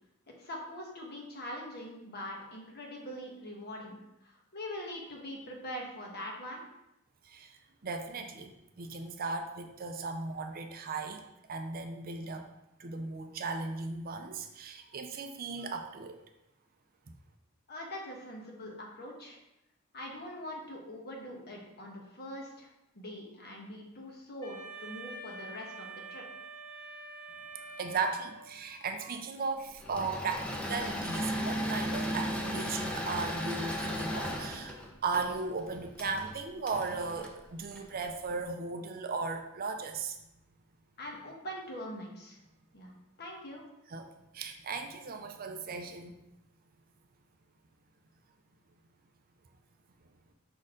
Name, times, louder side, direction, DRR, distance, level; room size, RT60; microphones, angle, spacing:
voice 1, 0.4-6.6 17.7-19.4 19.9-22.7 22.9-26.2 41.0-42.4 42.7-42.9 43.2-43.6, equal, 45° left, 0 dB, 1.3 m, -43 dB
voice 2, 7.2-11.2 11.5-12.5 12.8-16.2 27.5-40.2 43.9-44.1 44.3-46.1, right 4 dB, 40° right, 6 dB, 0.5 m, -37 dB
Wind instrument woodwind instrument, 24.4-28.6, right 3 dB, 80° left, 1.5 m, -46 dB
Engine / Mechanisms, 29.8-38.2, equal, 5° left, 0.6 m, -36 dB
6.2 x 4.3 x 3.7 m, 0.88 s
head